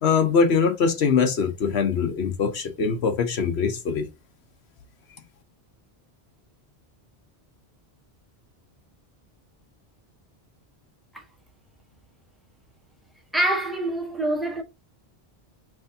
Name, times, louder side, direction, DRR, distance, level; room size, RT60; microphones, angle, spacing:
voice 1, 0.0-4.1, left 5 dB, 80° left, 1.1 m, -22 dB
voice 2, 13.3-14.6, right 1 dB, ahead, 0.8 m, -25 dB
6.0 x 2.6 x 2.7 m
omnidirectional pair, 1.1 m